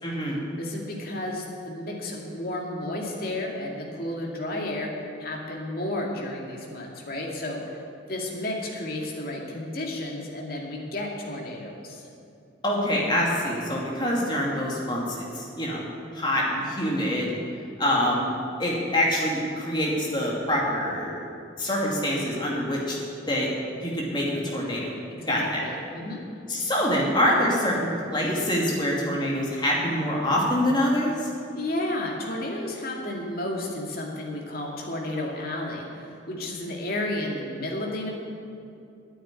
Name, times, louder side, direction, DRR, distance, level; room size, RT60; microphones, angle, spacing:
voice 1, 0.0-0.4 12.6-15.9 16.1-17.3 17.8-18.3 18.6-21.3 21.6-23.0 23.3-23.5 23.8-25.0 25.3-25.7 26.5-31.3, equal, 25° left, -3 dB, 2.5 m, -25 dB
voice 2, 0.5-4.9 5.2-7.8 8.1-12.0 25.1-26.2 31.5-38.1, left 1 dB, 50° left, -1 dB, 2.3 m, -32 dB
9.7 x 8.8 x 9.9 m, 2.6 s
head